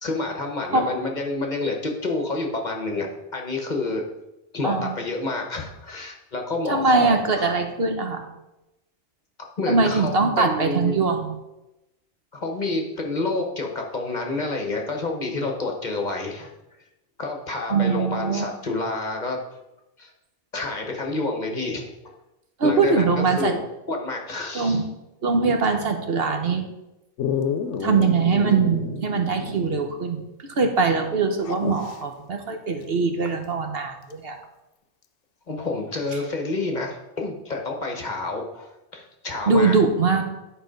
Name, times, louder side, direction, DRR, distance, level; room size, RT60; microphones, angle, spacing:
voice 1, 0.0-4.0 4.5-7.5 9.6-11.0 12.3-16.5 17.2-19.4 20.0-20.1 20.5-21.9 22.6-23.6 23.9-24.8 35.5-39.7, left 3 dB, 40° left, 2 dB, 1.2 m, -29 dB
voice 2, 6.7-8.3 9.7-11.3 17.7-18.4 22.6-23.5 24.5-24.8 25.2-26.6 27.8-30.2 30.5-34.4 39.5-40.2, right 4 dB, 60° right, 5 dB, 1.1 m, -22 dB
Dog, 27.2-29.9 30.2-30.3 31.4-32.0 34.1-34.2, left 6 dB, 80° left, 0.9 m, -29 dB
10.0 x 4.5 x 5.1 m, 0.95 s
omnidirectional pair, 1.2 m